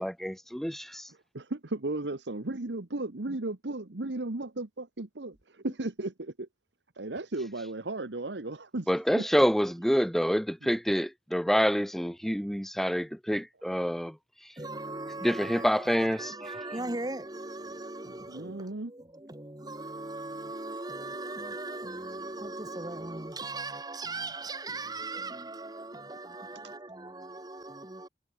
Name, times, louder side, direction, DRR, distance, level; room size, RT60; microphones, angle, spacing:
voice 1, 0.0-1.0 8.9-14.1 15.2-16.3, equal, ahead, 1.3 m, -27 dB
voice 2, 1.1-6.5 7.0-9.4 18.3-18.9, right 2 dB, 80° right, 1.3 m, -35 dB
voice 3, 14.6-28.1, right 2 dB, 20° right, 1.7 m, -39 dB
head